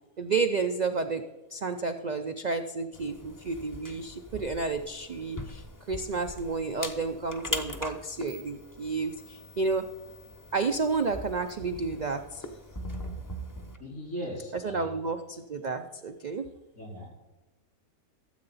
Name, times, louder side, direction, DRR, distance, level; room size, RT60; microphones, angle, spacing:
voice 1, 0.2-1.2 1.5-9.9 10.5-12.5 14.5-16.5, right 4 dB, 80° right, 7 dB, 0.4 m, -31 dB
sound 1, 2.9-13.8, left 1 dB, 20° left, 0.5 m, -41 dB
voice 2, 13.8-14.9 16.8-17.1, equal, 70° left, -2 dB, 4.8 m, -38 dB
13.5 x 7.8 x 4.1 m, 1.2 s
omnidirectional pair, 1.5 m